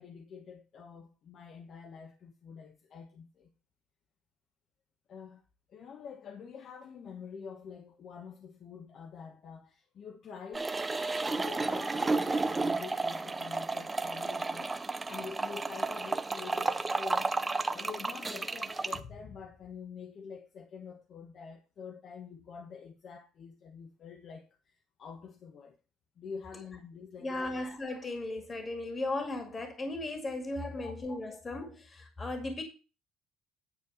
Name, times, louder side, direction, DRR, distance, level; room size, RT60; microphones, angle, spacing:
voice 1, 0.0-3.5 5.1-5.4 5.7-10.7 11.2-17.3 17.7-25.8 26.2-27.5 30.7-31.0 31.3-31.4, left 6 dB, 50° left, 1.2 m, -47 dB
sound 1, 10.5-19.0, right 3 dB, 15° right, 0.7 m, -32 dB
voice 2, 27.2-32.6, left 2 dB, 25° left, 2.1 m, -36 dB
10.0 x 4.5 x 6.5 m
cardioid pair, 115°, 0 cm